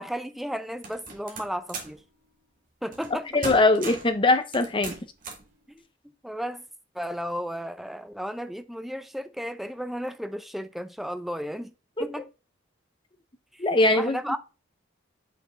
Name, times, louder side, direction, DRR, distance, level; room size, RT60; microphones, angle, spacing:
voice 1, 0.0-2.0 2.8-3.3 5.7-5.8 6.2-6.6 6.9-11.7 12.0-12.2 13.5-13.7 13.9-14.4, equal, ahead, 0.5 m, -34 dB
sound 1, 0.8-2.0 2.9-3.2 3.4-4.1 4.5-5.5, right 3 dB, 45° right, 2.1 m, -37 dB
voice 2, 3.3-4.9 12.0-12.1 13.6-14.2, left 2 dB, 25° left, 0.8 m, -21 dB
6.2 x 5.7 x 3.6 m
head